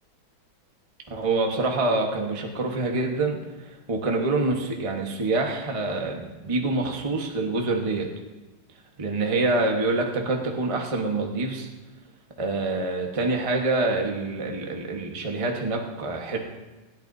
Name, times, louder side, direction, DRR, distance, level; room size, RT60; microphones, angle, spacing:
voice 1, 1.1-8.1 9.0-11.7 12.4-16.4, right 2 dB, 20° right, 1 dB, 0.9 m, -26 dB
19.5 x 14.0 x 2.7 m, 1.2 s
omnidirectional pair, 2.3 m